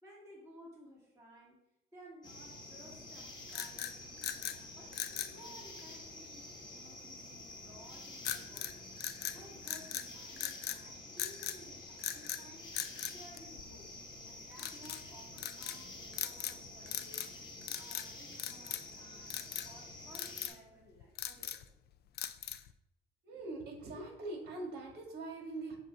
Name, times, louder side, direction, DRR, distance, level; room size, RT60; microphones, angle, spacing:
voice 1, 0.0-5.0 5.3-8.7 9.3-12.7 13.0-13.9 14.2-17.3 17.7-21.7, equal, 15° right, -5 dB, 2.1 m, -57 dB
sound 1, 2.2-20.5, left 2 dB, 20° left, 1.2 m, -49 dB
sound 2, 3.5-4.6 4.9-5.4 8.2-8.7 9.0-10.1 10.4-10.8 11.2-11.6 12.0-12.4 12.7-13.9 14.6-15.0 15.4-15.8 16.1-16.6 16.9-17.4 17.6-18.1 18.4-18.9 19.3-19.7 20.1-20.6 21.0-21.7 22.2-22.7, left 11 dB, 55° left, 0.4 m, -40 dB
voice 2, 23.2-25.8, right 2 dB, 55° right, 1 dB, 1.9 m, -42 dB
7.3 x 2.8 x 5.3 m, 0.86 s
cardioid pair, 160°, 20 cm